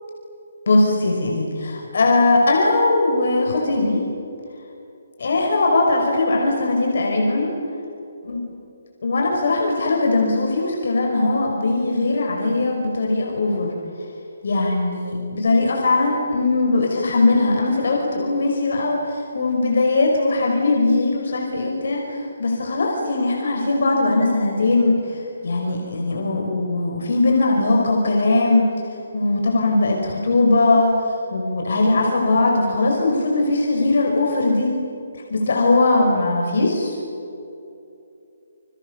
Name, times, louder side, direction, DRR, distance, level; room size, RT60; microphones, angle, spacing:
voice 1, 0.7-4.0 5.2-7.5 8.2-8.4 9.0-13.8 14.4-28.7 29.1-34.7 35.3-37.0, left 2 dB, 55° left, 0 dB, 5.4 m, -20 dB
29.0 x 28.0 x 6.9 m, 2.7 s
hypercardioid pair, 175°, 0 cm